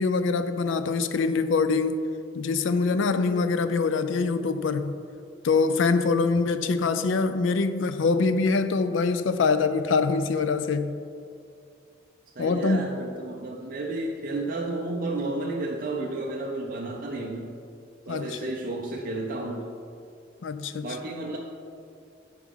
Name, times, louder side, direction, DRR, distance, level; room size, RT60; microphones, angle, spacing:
voice 1, 0.0-2.0 2.3-4.9 5.4-10.9 12.4-12.9 18.1-18.4 20.4-20.9, left 4 dB, 75° left, 0.4 m, -24 dB
voice 2, 12.4-17.6 18.1-19.7 20.8-21.4, right 2 dB, 45° right, 0.5 m, -32 dB
11.0 x 4.8 x 3.6 m
head